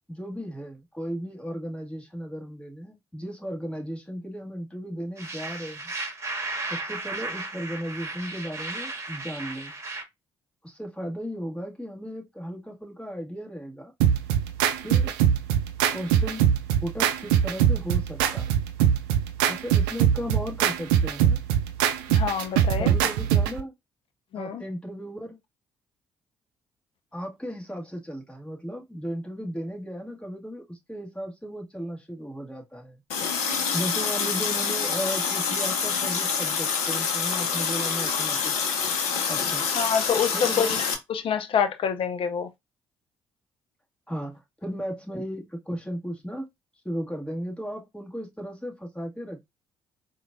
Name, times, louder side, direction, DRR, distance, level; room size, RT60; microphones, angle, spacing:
voice 1, 0.1-5.9 6.7-9.7 10.6-13.9 14.8-15.2 15.9-16.5 16.8-18.6 19.5-21.4 22.8-23.7 24.3-25.4 27.1-33.0 33.7-38.7 39.3-39.7 40.3-40.8 44.1-46.5 46.8-49.4, equal, 10° left, 1.9 m, -35 dB
sound 1, 5.2-10.0, right 2 dB, 25° right, 1.6 m, -35 dB
sound 2, 14.0-23.6, right 9 dB, 75° right, 0.4 m, -22 dB
voice 2, 22.1-22.9 24.3-24.6 39.7-42.5, left 7 dB, 50° left, 0.6 m, -27 dB
Water tap faucet, 33.1-40.9, left 6 dB, 70° left, 0.9 m, -26 dB
4.3 x 2.6 x 2.6 m
hypercardioid pair, 45°, 12 cm